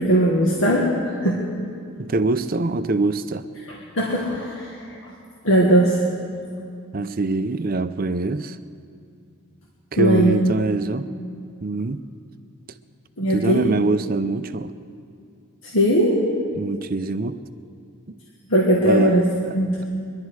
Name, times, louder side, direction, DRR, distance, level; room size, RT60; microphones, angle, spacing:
voice 1, 0.0-1.4 3.7-5.0 5.4-6.0 10.0-10.4 13.2-13.6 15.6-16.2 18.5-19.3 19.5-19.7, right 1 dB, 70° left, -3 dB, 1.8 m, -19 dB
voice 2, 2.0-3.5 6.9-8.6 9.9-11.1 11.6-12.0 13.3-14.7 16.6-17.4 18.9-19.2, right 3 dB, 45° right, 11 dB, 0.6 m, -24 dB
24.5 x 11.5 x 4.8 m, 2.3 s
head